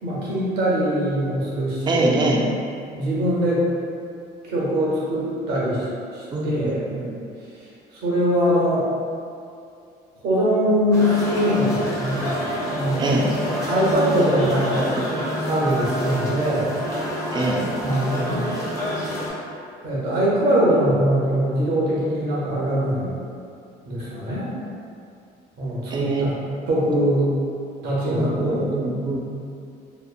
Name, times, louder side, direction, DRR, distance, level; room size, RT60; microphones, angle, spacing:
voice 1, 0.0-2.3 2.9-3.7 4.4-5.9 6.1-6.8 7.5-8.9 10.2-12.3 12.7-13.2 13.7-15.1 15.3-16.7 17.8-18.5 19.8-23.1 23.9-24.5 25.6-26.4 26.7-27.4 27.8-28.7, equal, 75° right, -6 dB, 0.8 m, -22 dB
voice 2, 1.9-2.5 6.3-7.2 13.0-13.3 17.3-17.6 25.9-26.3 28.1-29.2, right 2 dB, 25° right, -1 dB, 0.4 m, -24 dB
sound 1, 10.9-19.3, equal, 20° left, 0.6 m, -27 dB
2.9 x 2.0 x 2.3 m, 2.5 s
cardioid pair, 110°, 17 cm